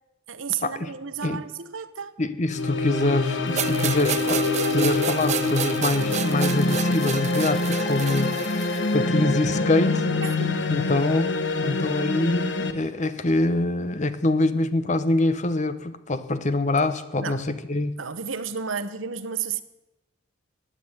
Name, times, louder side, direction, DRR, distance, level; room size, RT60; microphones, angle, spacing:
voice 1, 0.3-2.2 10.2-10.7 17.2-17.5 18.0-19.6, right 7 dB, 80° right, 12 dB, 1.0 m, -32 dB
voice 2, 2.2-10.1 10.7-18.0, left 2 dB, 35° left, 12 dB, 0.9 m, -25 dB
sound 1, 2.5-12.7, left 3 dB, 65° left, 1.3 m, -25 dB
sound 2, 3.6-8.9, right 7 dB, 35° right, 0.6 m, -31 dB
16.0 x 9.9 x 8.0 m, 0.98 s
head